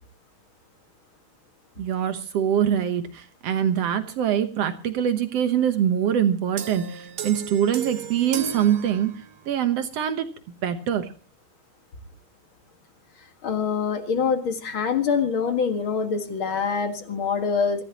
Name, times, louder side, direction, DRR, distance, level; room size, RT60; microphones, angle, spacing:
voice 1, 1.8-9.1 9.4-10.3 10.6-11.1, right 9 dB, 80° right, 9 dB, 1.4 m, -24 dB
sound 1, 6.6-9.6, right 8 dB, 55° right, 2.4 m, -35 dB
voice 2, 13.4-17.8, left 6 dB, 45° left, 7 dB, 1.9 m, -25 dB
25.5 x 14.5 x 2.9 m, 0.35 s
omnidirectional pair, 4.4 m